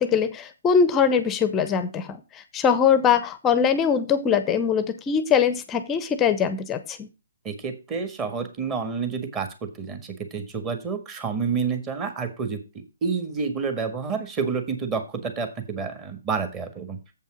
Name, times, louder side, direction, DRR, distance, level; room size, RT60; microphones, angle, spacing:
voice 1, 0.0-7.1, left 7 dB, 15° left, 13 dB, 0.7 m, -22 dB
voice 2, 7.4-9.5 9.8-10.0 10.3-17.0, right 5 dB, 20° right, 7 dB, 1.7 m, -29 dB
7.6 x 5.5 x 6.1 m, 0.30 s
hypercardioid pair, 145°, 0 cm